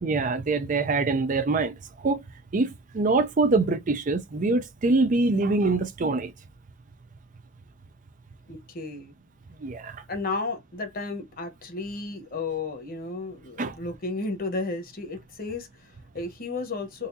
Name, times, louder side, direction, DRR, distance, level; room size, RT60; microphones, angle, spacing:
voice 1, 0.0-1.7 2.0-2.2 2.5-6.3 9.6-10.0 13.6-13.8, right 3 dB, 40° right, 0.5 m, -24 dB
voice 2, 8.5-9.1 10.1-17.1, left 3 dB, 50° left, 1.1 m, -33 dB
4.0 x 2.6 x 2.6 m
head